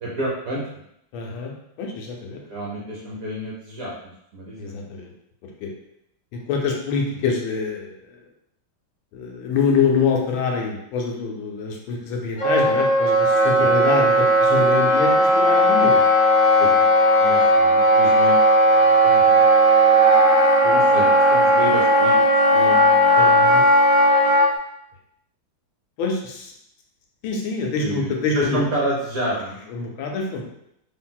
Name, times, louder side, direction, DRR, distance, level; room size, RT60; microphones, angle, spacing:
voice 1, 0.0-0.8 2.5-3.9 4.3-4.9 7.1-7.2 13.6-13.7 15.9-16.0 16.6-16.8 17.2-18.4 18.7-19.1 20.7-22.2 22.5-23.5 27.8-29.6, right 1 dB, 65° right, -6 dB, 0.8 m, -29 dB
voice 2, 1.1-1.5 1.8-2.4 4.6-5.1 5.6-5.7 6.3-8.2 9.1-15.9 19.0-19.5 20.6-20.8 23.2-23.6 26.0-26.5 27.2-28.6 29.7-30.4, left 5 dB, 80° left, 1 dB, 1.3 m, -25 dB
Wind instrument woodwind instrument, 12.4-24.5, equal, 55° left, 0.7 m, -16 dB
3.1 x 2.7 x 2.2 m, 0.76 s
omnidirectional pair, 2.3 m